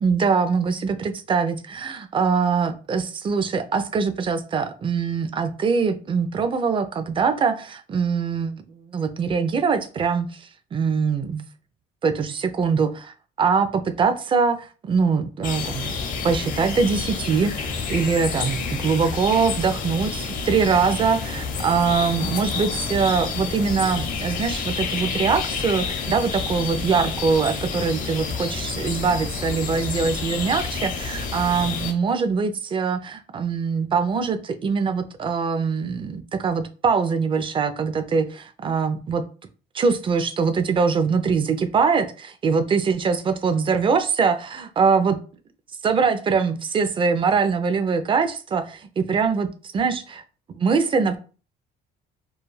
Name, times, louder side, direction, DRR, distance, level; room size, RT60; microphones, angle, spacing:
voice 1, 0.0-11.4 12.0-16.0 16.2-39.2 39.7-45.2 45.8-49.5 49.7-50.2 50.5-51.2, right 5 dB, 30° right, 9 dB, 0.4 m, -23 dB
sound 1, 15.4-31.9, left 5 dB, 50° left, 0.7 m, -29 dB
2.3 x 2.3 x 3.1 m, 0.37 s
cardioid pair, 110°, 17 cm